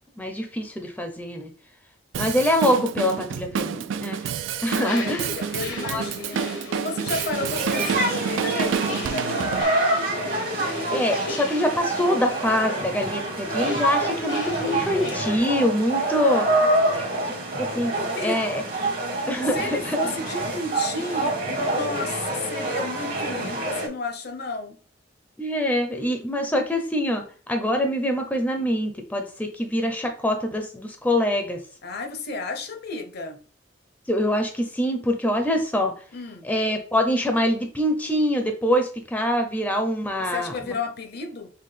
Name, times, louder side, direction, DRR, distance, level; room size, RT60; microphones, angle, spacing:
voice 1, 0.2-1.5 2.2-4.3 4.6-5.3 5.9-6.0 10.9-16.5 16.9-17.9 18.2-18.6 19.3-20.0 25.4-31.6 34.1-35.9 36.4-40.7, equal, 10° left, 0.5 m, -24 dB
Drum kit, 2.1-9.6, right 7 dB, 80° right, 0.3 m, -29 dB
voice 2, 4.7-6.5 6.7-9.8 15.9-17.4 17.9-18.4 19.5-24.8 31.8-33.4 36.1-36.5 40.2-41.5, left 3 dB, 55° left, 0.6 m, -33 dB
sound 1, 4.8-15.4, left 2 dB, 80° left, 0.9 m, -37 dB
sound 2, 7.3-23.9, right 2 dB, 50° right, 1.2 m, -27 dB
5.5 x 2.2 x 3.3 m
head